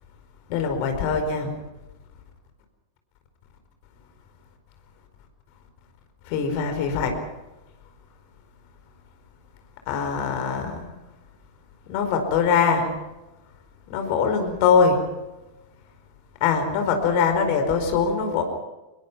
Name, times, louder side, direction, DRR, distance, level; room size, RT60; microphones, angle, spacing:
voice 1, 0.5-1.5 6.3-7.1 9.9-10.9 11.9-12.9 13.9-15.0 16.4-18.4, left 6 dB, 45° left, 6 dB, 4.6 m, -22 dB
26.0 x 22.5 x 6.0 m, 1.1 s
figure-of-eight pair, 90°, 0 cm